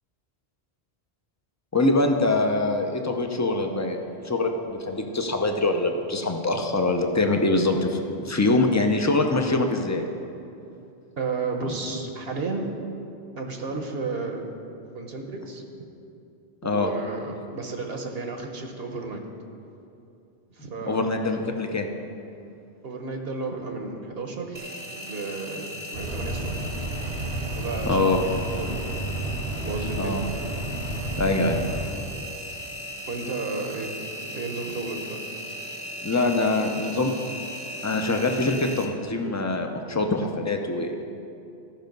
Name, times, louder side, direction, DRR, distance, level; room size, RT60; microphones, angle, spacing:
voice 1, 1.7-4.5 4.8-10.0 16.6-16.9 20.9-21.9 27.8-28.2 30.0-30.2 31.2-31.6 36.0-37.1 37.8-40.9, left 2 dB, 20° left, 4 dB, 0.5 m, -24 dB
voice 2, 11.2-12.7 13.3-14.5 14.9-15.6 16.6-19.2 20.5-21.1 22.8-26.6 27.6-28.9 29.6-30.2 33.1-33.9 34.2-35.2 36.1-36.6, right 3 dB, 65° right, 3 dB, 1.1 m, -33 dB
Engine, 24.5-38.8, equal, 25° right, 0.8 m, -37 dB
sound 1, 25.9-31.9, right 2 dB, 85° right, 1.7 m, -31 dB
14.0 x 5.4 x 5.3 m, 2.7 s
omnidirectional pair, 1.1 m